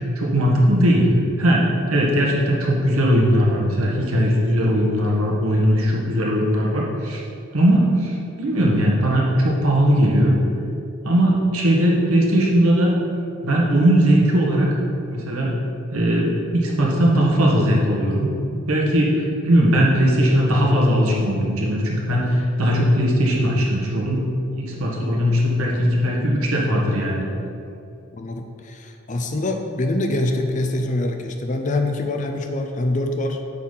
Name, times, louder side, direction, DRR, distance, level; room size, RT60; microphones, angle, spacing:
voice 1, 0.1-1.1 1.4-7.2 7.5-10.4 11.0-12.9 13.4-14.7 15.1-15.6 15.9-18.3 18.7-24.2 24.5-27.3, equal, 90° right, -2 dB, 1.5 m, -19 dB
voice 2, 28.1-33.4, left 2 dB, 35° left, 5 dB, 0.6 m, -24 dB
8.5 x 4.1 x 5.7 m, 2.6 s
head